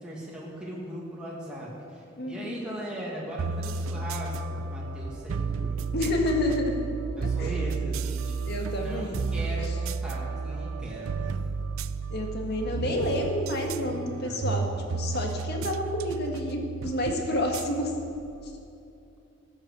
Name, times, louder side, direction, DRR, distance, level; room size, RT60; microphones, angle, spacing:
voice 1, 0.0-5.8 7.2-8.5 8.7-11.5 12.6-13.0 13.8-14.6, right 1 dB, 5° right, -6 dB, 1.9 m, -39 dB
voice 2, 2.2-2.7 5.9-6.8 7.2-7.6 8.5-9.2 12.1-14.7 14.9-17.9, left 1 dB, 55° left, 2 dB, 1.6 m, -29 dB
sound 1, 3.4-18.6, right 5 dB, 85° right, 0.4 m, -32 dB
13.5 x 7.9 x 6.6 m, 2.6 s
head